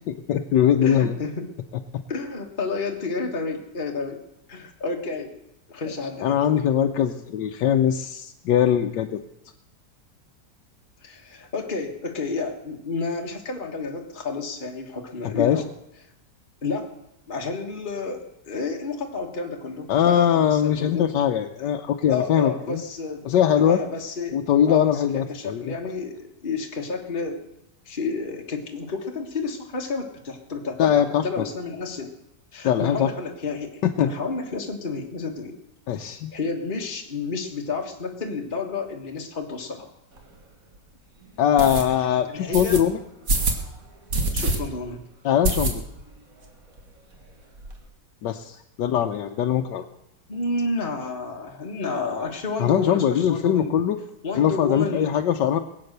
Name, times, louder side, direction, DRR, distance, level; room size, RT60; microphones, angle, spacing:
voice 1, 0.3-1.1 6.2-9.2 15.2-15.6 19.9-22.8 23.2-23.8 24.3-25.7 30.8-31.4 32.6-33.1 33.8-34.1 35.9-36.3 41.4-43.0 45.2-45.8 48.2-49.8 52.6-54.0 54.3-55.6, left 9 dB, 85° left, 4 dB, 1.4 m, -21 dB
voice 2, 0.8-1.5 2.1-4.2 4.5-5.3 5.7-6.4 11.0-15.7 16.6-16.9 17.3-21.1 21.6-21.7 22.1-23.3 23.6-24.4 24.7-27.4 27.8-32.1 32.5-35.6 36.0-39.9 42.3-42.8 44.3-45.0 50.3-53.7 54.2-55.1, left 4 dB, 30° left, 1 dB, 1.6 m, -30 dB
sound 1, 40.2-40.3 40.7-40.8 41.6-41.8 42.5-42.8 43.3-43.6 44.1-44.6 44.9-45.0 45.4-46.1 46.4-46.5 46.8-46.9 47.1-47.8, right 2 dB, 55° right, 2.2 m, -25 dB
21.5 x 8.7 x 6.7 m, 0.84 s
omnidirectional pair, 1.9 m